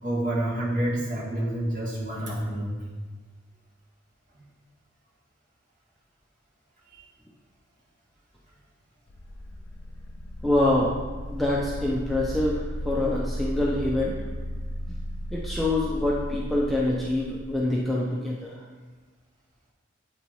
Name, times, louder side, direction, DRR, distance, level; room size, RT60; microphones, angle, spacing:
voice 1, 0.0-2.8 6.9-7.0, right 1 dB, 40° right, -6 dB, 1.7 m, -28 dB
sound 1, 9.1-17.9, equal, 75° left, 0.7 m, -35 dB
voice 2, 10.4-10.9 11.3-14.1 14.9-15.0 15.3-18.6, left 1 dB, ahead, -5 dB, 0.5 m, -25 dB
8.1 x 4.1 x 3.1 m, 1.4 s
head